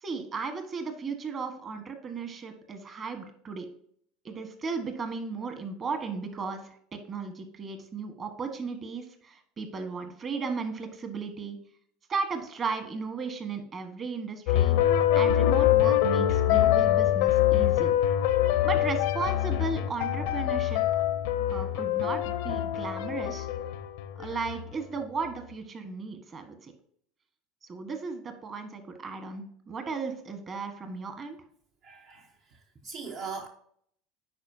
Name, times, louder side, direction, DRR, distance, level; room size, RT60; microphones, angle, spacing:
voice 1, 0.0-3.7 4.2-11.6 12.1-14.8 15.1-17.9 18.6-21.0 21.5-23.5 24.2-26.7 27.6-31.4, right 4 dB, 35° right, 1.3 m, -35 dB
sound 1, 14.5-24.7, left 12 dB, 75° left, 0.6 m, -24 dB
voice 2, 31.8-33.5, right 5 dB, 60° right, 0.9 m, -40 dB
10.0 x 4.2 x 2.7 m
supercardioid pair, 105°, 0 cm